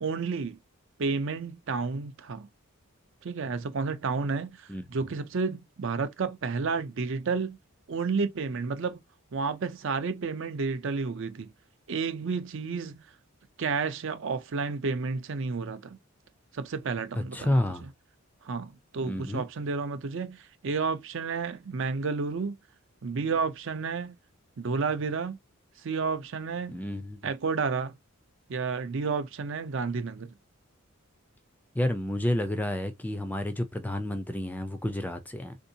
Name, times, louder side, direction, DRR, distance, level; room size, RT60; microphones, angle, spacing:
voice 1, 0.0-0.6 1.0-2.5 3.2-7.6 7.9-9.0 9.3-11.5 11.9-13.1 13.6-16.0 16.5-17.6 18.4-22.6 23.0-24.2 24.6-25.4 25.8-26.8 27.2-27.9 28.5-30.3, right 4 dB, 60° right, 0.5 m, -31 dB
voice 2, 17.2-17.9 19.0-19.5 26.7-27.2 31.7-35.6, left 1 dB, 10° left, 0.3 m, -30 dB
3.5 x 2.6 x 2.7 m
head